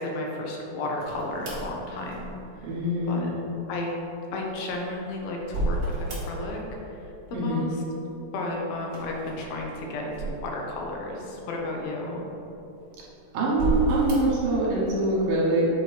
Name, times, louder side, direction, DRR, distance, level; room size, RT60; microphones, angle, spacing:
voice 1, 0.0-2.4 3.1-3.3 3.7-4.0 4.3-6.6 7.3-7.8 8.3-12.3, left 2 dB, 80° left, -1 dB, 2.5 m, -33 dB
sound 1, 1.0-2.6 4.5-6.7 7.0-7.7 8.8-11.0 11.5-11.6 12.5-13.0 13.5-14.4, right 1 dB, 50° right, 1.3 m, -32 dB
voice 2, 2.6-3.5 7.3-7.7 13.3-15.7, right 2 dB, 70° right, -5 dB, 2.6 m, -24 dB
7.9 x 3.1 x 5.0 m, 2.9 s
omnidirectional pair, 4.3 m